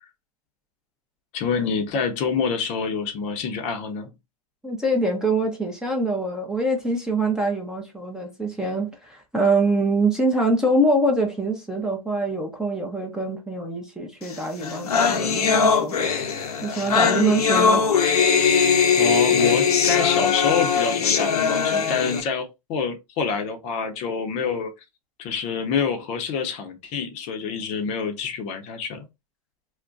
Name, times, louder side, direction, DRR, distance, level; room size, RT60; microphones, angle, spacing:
voice 1, 1.3-4.1 19.0-24.7 25.2-29.0, left 5 dB, 35° left, 0.7 m, -27 dB
voice 2, 4.6-16.0 16.6-17.8, right 2 dB, 5° right, 0.6 m, -24 dB
sound 1, 14.3-14.4 14.6-22.2, left 6 dB, 85° left, 0.7 m, -20 dB
2.4 x 2.1 x 3.7 m
hypercardioid pair, 125°, 19 cm